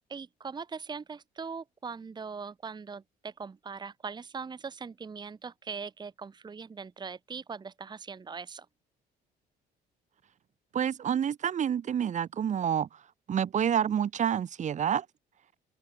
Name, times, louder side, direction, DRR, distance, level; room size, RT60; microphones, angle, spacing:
voice 1, 0.1-8.7, right 5 dB, 25° right, 1.5 m, -41 dB
voice 2, 10.7-12.9 13.3-15.1, right 8 dB, 45° right, 2.1 m, -28 dB
cardioid pair, 110°, 17 cm